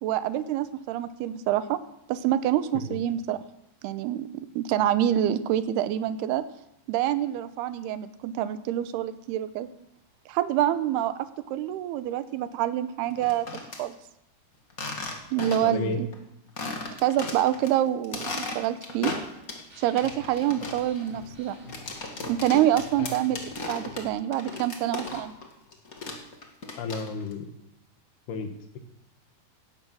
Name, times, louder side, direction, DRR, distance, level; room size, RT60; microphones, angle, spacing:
voice 1, 0.0-1.8 2.1-3.4 3.8-4.3 4.6-6.4 6.9-9.7 10.3-11.1 11.5-13.5 13.8-14.0 15.3-16.1 17.0-19.1 19.8-21.6 22.3-23.4 23.7-25.3, right 12 dB, 80° right, 12 dB, 2.7 m, -26 dB
sound 1, 13.1-13.8 14.7-15.8 16.1-16.2 16.6-17.7 18.0-19.7 20.0-25.5 25.7-27.3, left 3 dB, 50° left, 1.0 m, -36 dB
voice 2, 15.6-16.0 23.0-23.1 26.8-27.5 28.3-28.5, left 4 dB, 70° left, 6 dB, 3.5 m, -32 dB
sound 2, 19.7-24.1, left 1 dB, 20° right, 4.4 m, -47 dB
17.0 x 13.0 x 6.2 m, 0.83 s
omnidirectional pair, 4.9 m